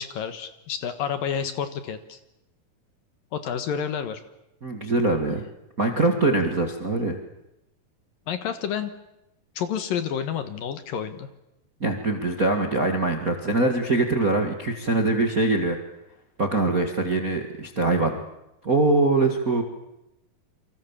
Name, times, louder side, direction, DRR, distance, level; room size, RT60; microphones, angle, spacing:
voice 1, 0.0-2.2 3.3-4.2 6.0-6.2 8.3-8.9 9.6-11.3, left 8 dB, 65° left, 9 dB, 2.8 m, -29 dB
voice 2, 4.6-5.4 5.8-7.2 11.8-15.8 16.4-18.2 18.6-19.6, right 2 dB, 35° right, 4 dB, 1.5 m, -23 dB
29.0 x 25.0 x 7.3 m, 0.88 s
omnidirectional pair, 4.8 m